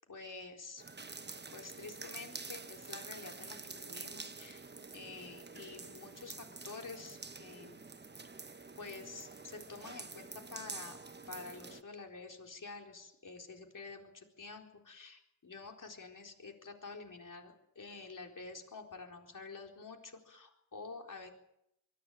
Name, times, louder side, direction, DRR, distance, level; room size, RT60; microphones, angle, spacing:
voice 1, 0.1-0.8 1.5-4.7 4.9-7.8 8.8-11.0 11.3-21.3, left 4 dB, 75° left, 2 dB, 4.3 m, -49 dB
sound 1, 0.8-11.8, right 4 dB, 35° right, 1.0 m, -48 dB
23.0 x 15.0 x 9.0 m, 0.81 s
wide cardioid pair, 65°, 32 cm